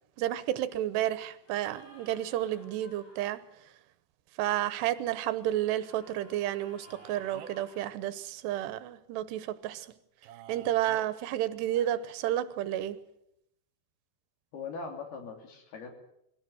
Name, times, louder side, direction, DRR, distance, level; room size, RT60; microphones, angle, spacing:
voice 1, 0.2-3.4 4.4-9.9 10.5-13.0, right 13 dB, 85° right, 3.1 m, -31 dB
sound 1, 1.4-3.3 5.5-7.9 11.6-11.9, left 2 dB, 40° left, 6.1 m, -56 dB
Male speech man speaking, 6.8-7.7 10.2-11.1, right 11 dB, 70° right, 2.8 m, -49 dB
voice 2, 14.5-15.9, left 4 dB, 70° left, 4.7 m, -40 dB
23.0 x 17.0 x 7.9 m
omnidirectional pair, 4.8 m